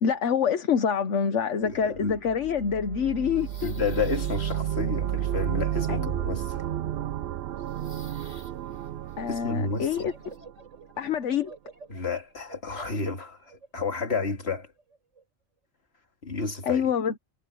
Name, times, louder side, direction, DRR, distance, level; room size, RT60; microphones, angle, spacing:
voice 1, 0.0-3.7 5.9-6.1 9.2-10.3 11.0-11.5 16.6-17.1, left 7 dB, 75° left, 1.4 m, -26 dB
voice 2, 1.6-2.2 3.6-6.6 9.3-10.0 11.9-14.7 16.2-16.8, left 4 dB, 60° left, 2.5 m, -31 dB
sound 1, 1.9-10.8, right 11 dB, 65° right, 0.7 m, -32 dB
sound 2, 2.9-10.4, left 1 dB, 35° left, 7.1 m, -55 dB
sound 3, 9.9-15.2, right 4 dB, 85° right, 5.4 m, -50 dB
omnidirectional pair, 1.2 m